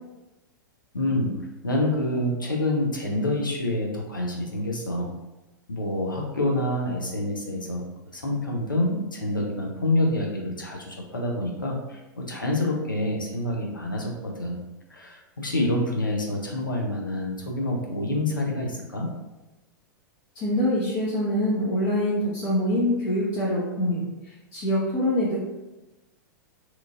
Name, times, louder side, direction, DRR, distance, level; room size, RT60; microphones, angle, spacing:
voice 1, 0.9-5.1 5.7-7.9 8.1-14.6 14.9-19.1, left 1 dB, 90° left, -1 dB, 0.6 m, -27 dB
voice 2, 20.3-25.4, left 1 dB, 35° left, -7 dB, 0.7 m, -25 dB
3.0 x 2.4 x 2.4 m, 1.1 s
figure-of-eight pair, 100°, 11 cm